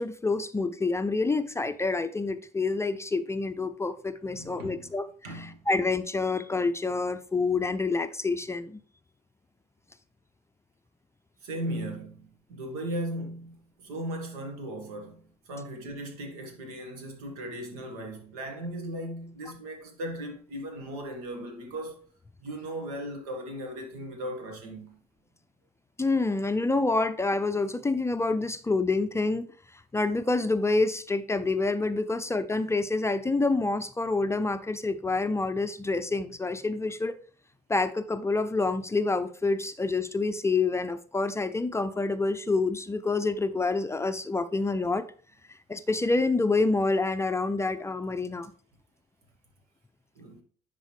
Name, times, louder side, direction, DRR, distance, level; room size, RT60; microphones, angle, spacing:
voice 1, 0.0-5.1 5.3-8.8 26.0-29.5 29.9-37.1 37.7-45.0 45.7-48.5, left 3 dB, 15° left, 0.5 m, -27 dB
voice 2, 4.3-4.9 5.2-5.6 11.4-22.1 22.4-25.0 50.2-50.4, right 1 dB, 75° right, 1.6 m, -37 dB
10.0 x 4.1 x 3.3 m
hypercardioid pair, 60°, 19 cm